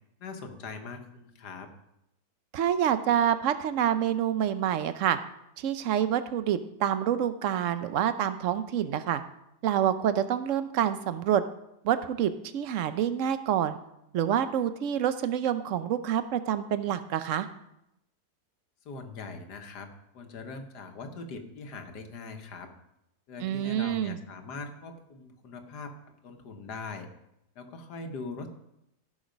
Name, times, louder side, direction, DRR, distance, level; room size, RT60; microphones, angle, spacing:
voice 1, 0.2-1.7 18.9-22.7 23.3-27.1 27.6-28.5, left 4 dB, 75° left, 5 dB, 1.8 m, -41 dB
voice 2, 2.5-5.2 5.6-9.2 9.6-11.4 11.8-13.8 14.1-17.5 23.4-24.2, right 10 dB, 60° right, 12 dB, 0.9 m, -27 dB
14.5 x 6.4 x 5.2 m, 0.83 s
omnidirectional pair, 1.8 m